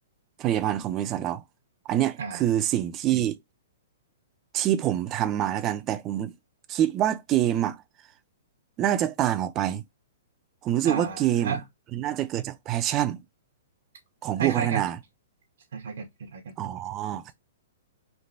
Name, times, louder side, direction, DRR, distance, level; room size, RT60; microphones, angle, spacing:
voice 1, 0.4-1.4 1.9-3.4 4.5-6.3 6.7-7.8 8.8-9.8 10.6-11.6 11.9-13.2 14.2-15.0 16.6-17.3, right 12 dB, 20° right, 0.3 m, -26 dB
voice 2, 10.8-11.6 14.4-14.8 15.7-16.6, right 6 dB, 65° right, 0.7 m, -32 dB
3.2 x 2.5 x 2.5 m
hypercardioid pair, 170°, 0 cm